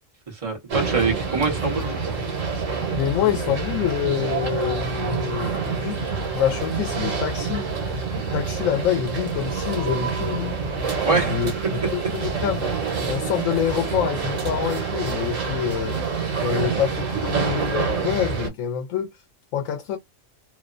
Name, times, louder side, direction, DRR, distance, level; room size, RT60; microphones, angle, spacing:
voice 1, 0.3-2.0 11.0-11.5, right 4 dB, 30° right, 1.0 m, -24 dB
sound 1, 0.7-18.5, right 5 dB, 80° right, 1.3 m, -27 dB
voice 2, 2.9-6.0 6.3-7.7 8.1-10.6 11.1-11.5 11.9-12.7 13.0-16.0 16.4-19.1 19.5-20.0, left 9 dB, 85° left, 1.0 m, -26 dB
2.9 x 2.0 x 2.4 m
omnidirectional pair, 1.3 m